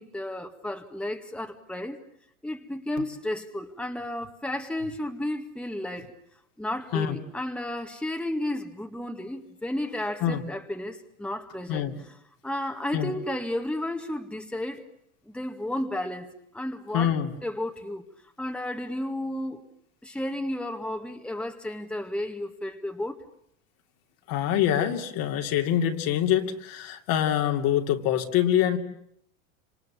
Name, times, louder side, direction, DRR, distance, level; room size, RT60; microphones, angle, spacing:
voice 1, 0.0-2.0 2.4-6.1 6.6-11.9 12.4-14.8 15.3-17.1 17.4-18.0 18.4-19.6 20.0-23.2, left 1 dB, ahead, 5 dB, 2.1 m, -33 dB
voice 2, 16.9-17.3 24.3-28.8, left 10 dB, 50° left, 4 dB, 2.9 m, -25 dB
30.0 x 26.5 x 7.3 m, 0.72 s
hypercardioid pair, 95°, 42 cm